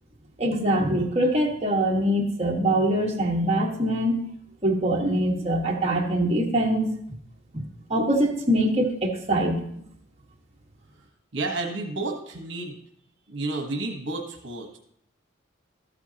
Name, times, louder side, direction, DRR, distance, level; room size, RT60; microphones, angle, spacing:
voice 1, 0.4-4.3 4.6-6.9 7.5-7.6 7.9-9.6, right 1 dB, 35° right, -2 dB, 1.6 m, -23 dB
voice 2, 11.3-12.8 13.3-14.8, right 2 dB, 70° right, 3 dB, 1.2 m, -31 dB
13.5 x 8.1 x 2.9 m, 0.68 s
head